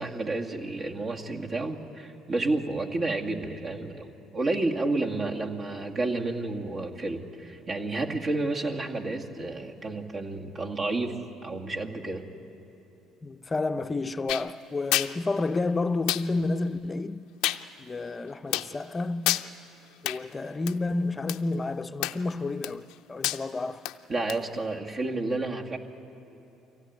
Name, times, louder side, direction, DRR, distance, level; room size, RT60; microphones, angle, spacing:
voice 1, 0.0-12.2 24.1-25.8, right 2 dB, 40° right, 2.2 m, -30 dB
voice 2, 13.2-17.2 17.8-19.4 20.0-23.9, left 3 dB, 25° left, 0.7 m, -30 dB
sound 1, 14.3-14.5 14.9-15.1 16.1-16.3 17.4-17.6 18.5-18.7 19.3-19.5 20.1-20.2 20.7-20.8 21.3-21.4 22.0-22.3 22.6-22.9 23.2-23.4 23.9-24.0 24.3-24.4, left 16 dB, 80° left, 0.6 m, -27 dB
24.0 x 16.5 x 9.5 m
supercardioid pair, 75°, 0 cm